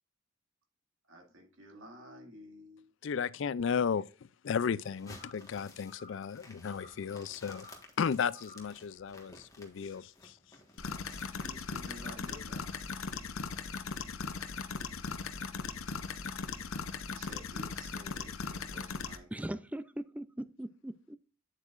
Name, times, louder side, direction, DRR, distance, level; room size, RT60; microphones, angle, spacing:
voice 1, 1.1-2.9 11.4-12.8 17.1-19.5, equal, 75° right, 2.2 m, -51 dB
voice 2, 3.0-7.7 8.0-10.4, left 6 dB, 65° left, 0.4 m, -34 dB
sound 1, 4.8-12.1, left 2 dB, 15° left, 1.5 m, -55 dB
sound 2, 5.1-5.5 5.8-6.3 6.7-7.1 7.5-7.9 8.3-8.8, left 1 dB, 40° left, 1.7 m, -55 dB
sound 3, 10.8-19.2, left 5 dB, 85° left, 0.8 m, -39 dB
voice 3, 19.3-21.2, right 1 dB, 5° right, 0.4 m, -40 dB
9.0 x 8.1 x 2.5 m
head